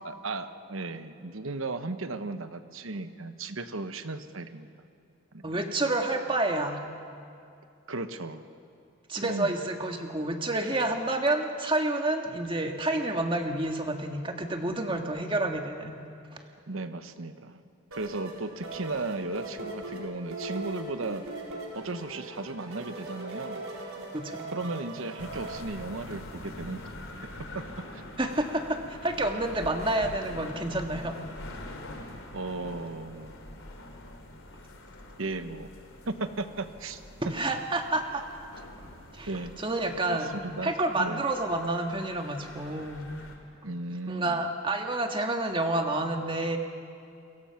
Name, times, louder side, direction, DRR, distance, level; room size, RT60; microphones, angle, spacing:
voice 1, 0.0-4.7 5.3-5.5 7.9-8.4 9.2-9.5 16.7-17.6 17.9-21.2 21.7-23.6 24.5-27.7 27.9-28.0 32.3-33.4 35.2-35.7 36.1-37.0 39.3-39.6 40.1-41.2 43.6-44.4, right 3 dB, 70° right, 10 dB, 1.1 m, -36 dB
voice 2, 5.4-6.8 9.1-16.0 16.3-16.4 24.1-24.5 28.2-31.1 37.3-38.2 39.1-39.3 39.6-43.1 44.1-46.6, right 2 dB, 25° right, 4 dB, 1.7 m, -29 dB
sound 1, 17.9-25.6, right 2 dB, 90° right, 4.7 m, -40 dB
sound 2, 25.2-43.4, left 1 dB, 75° left, 3.0 m, -45 dB
29.0 x 22.5 x 5.9 m, 2.5 s
head